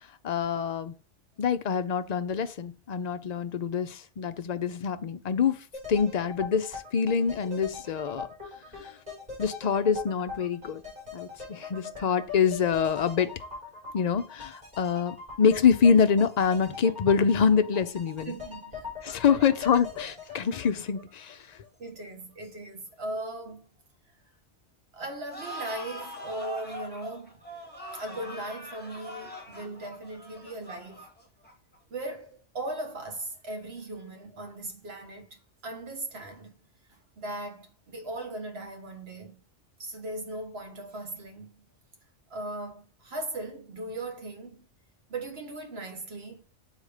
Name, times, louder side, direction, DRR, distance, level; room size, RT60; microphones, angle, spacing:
voice 1, 0.2-1.0 1.4-8.3 8.8-9.0 9.4-10.8 11.1-13.3 13.9-18.3 19.0-21.4, left 6 dB, 55° left, 0.4 m, -25 dB
sound 1, 5.7-21.7 22.0-22.1, left 5 dB, 35° right, 4.2 m, -42 dB
voice 2, 18.3-18.9 21.8-23.7 24.9-27.4 27.9-31.0 31.9-36.5 36.9-39.4 39.8-41.6 42.3-44.7 45.1-46.4, right 2 dB, 60° right, 1.5 m, -38 dB
sound 2, 25.3-31.8, equal, 10° left, 1.6 m, -42 dB
6.5 x 4.1 x 4.9 m
omnidirectional pair, 1.2 m